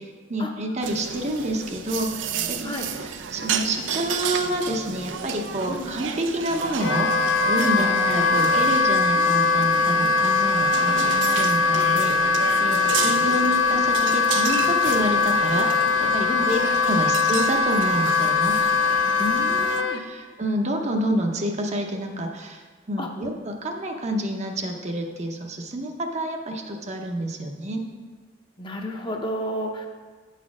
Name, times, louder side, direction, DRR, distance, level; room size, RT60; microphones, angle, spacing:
voice 1, 0.0-2.7 3.0-7.1 7.5-15.7 16.0-16.6 16.9-18.6 19.2-19.3 19.9-22.6 22.9-27.9, right 1 dB, 40° right, 3 dB, 0.7 m, -28 dB
sound 1, 0.8-19.8, right 7 dB, 85° right, 0.5 m, -32 dB
Wind instrument woodwind instrument, 6.8-20.0, left 4 dB, 80° left, 0.4 m, -21 dB
voice 2, 7.8-8.3 10.7-11.4 12.7-13.3 16.3-16.5 19.2-20.0 23.0-23.1 28.6-29.9, equal, 25° left, 2 dB, 0.7 m, -33 dB
8.2 x 4.2 x 6.0 m, 1.4 s
head